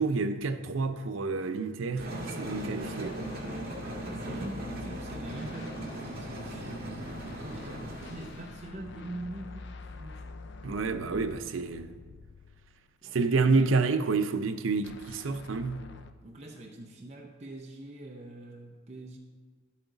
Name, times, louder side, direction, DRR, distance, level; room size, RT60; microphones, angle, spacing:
voice 1, 0.0-3.2 10.6-11.9 13.1-15.9, right 4 dB, 80° right, 0.6 m, -29 dB
sound 1, 2.0-8.4, right 1 dB, 50° right, 1.9 m, -38 dB
sound 2, 2.8-13.1 14.8-16.1, left 3 dB, 60° left, 0.5 m, -47 dB
voice 2, 4.1-7.1 7.4-10.2 13.0-13.2 16.2-19.2, right 1 dB, 35° right, 0.7 m, -44 dB
11.5 x 8.4 x 3.9 m
head